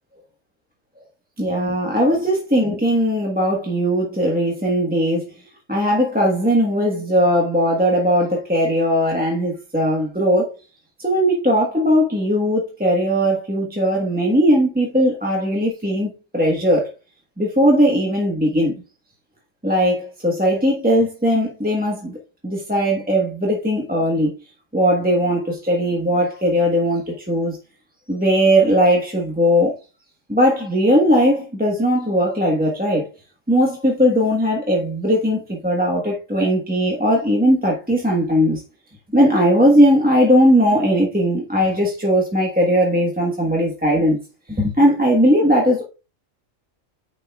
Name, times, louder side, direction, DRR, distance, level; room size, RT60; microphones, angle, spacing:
voice 1, 1.4-5.3 5.7-10.5 11.0-16.9 17.4-18.8 19.6-22.2 22.4-24.3 24.7-27.6 28.1-29.7 30.3-33.1 33.5-38.6 39.1-44.2 44.5-45.8, equal, 5° right, 1.1 m, -18 dB
9.5 x 5.7 x 2.3 m
omnidirectional pair, 1.3 m